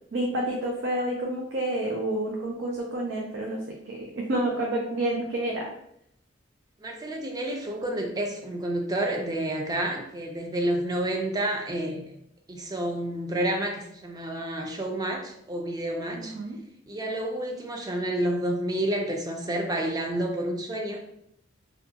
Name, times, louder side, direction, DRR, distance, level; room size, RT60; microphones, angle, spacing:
voice 1, 0.1-5.7 16.2-16.6, right 1 dB, 85° right, -1 dB, 0.4 m, -29 dB
voice 2, 6.8-12.1 12.5-16.3 16.9-21.0, right 1 dB, 20° right, 2 dB, 0.4 m, -29 dB
2.4 x 2.2 x 2.8 m, 0.75 s
head